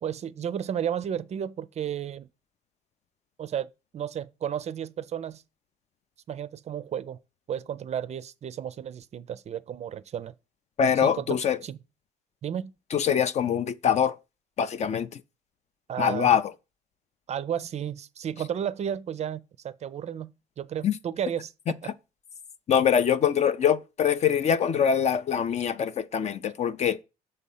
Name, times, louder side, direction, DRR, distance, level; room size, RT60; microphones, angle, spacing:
voice 1, 0.0-2.3 3.4-5.4 6.3-7.2 7.5-10.3 11.0-11.8 12.4-12.7 15.9-16.3 17.3-20.3 20.6-21.9, right 9 dB, 40° right, 0.4 m, -33 dB
voice 2, 10.8-11.6 12.9-14.2 14.6-15.2 16.0-16.5 20.8-21.0 22.7-27.0, left 8 dB, 40° left, 0.5 m, -24 dB
6.7 x 4.1 x 5.5 m
cardioid pair, 110°, 17 cm